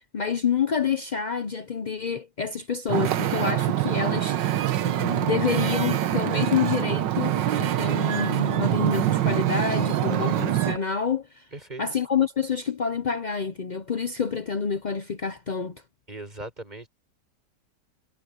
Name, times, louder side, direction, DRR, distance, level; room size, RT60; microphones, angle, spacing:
voice 1, 0.1-4.5 4.8-11.5 11.8-15.8, left 6 dB, 65° left, 0.4 m, -28 dB
Wind / Ocean, 2.9-10.8, right 12 dB, 85° right, 1.6 m, -25 dB
voice 2, 11.5-11.8 16.1-16.9, right 2 dB, 25° right, 4.6 m, -38 dB
omnidirectional pair, 1.9 m